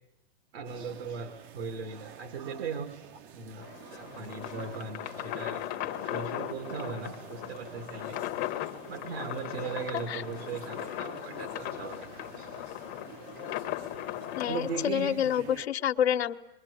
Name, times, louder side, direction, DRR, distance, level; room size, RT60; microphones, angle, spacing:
voice 1, 0.5-5.6 6.0-8.2 8.9-12.5 14.4-15.3, right 5 dB, 70° right, 5 dB, 2.8 m, -38 dB
sound 1, 0.6-15.7, right 8 dB, 35° right, 0.9 m, -49 dB
sound 2, 3.6-14.9, left 15 dB, 30° left, 1.0 m, -38 dB
voice 2, 14.3-16.3, left 9 dB, 75° left, 5 dB, 1.2 m, -28 dB
26.5 x 23.5 x 8.5 m, 0.96 s
hypercardioid pair, 135°, 32 cm